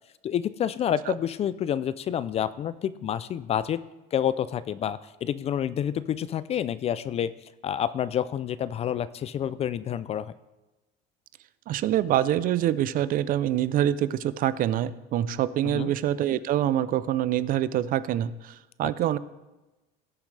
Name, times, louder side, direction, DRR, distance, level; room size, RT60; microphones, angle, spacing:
voice 1, 0.2-3.8 4.1-7.3 7.6-10.3 15.6-15.9, left 9 dB, 30° left, 17 dB, 0.3 m, -28 dB
voice 2, 11.7-19.2, right 11 dB, 45° right, 17 dB, 0.5 m, -25 dB
18.0 x 7.2 x 3.3 m, 1.1 s
cardioid pair, 125°, 20 cm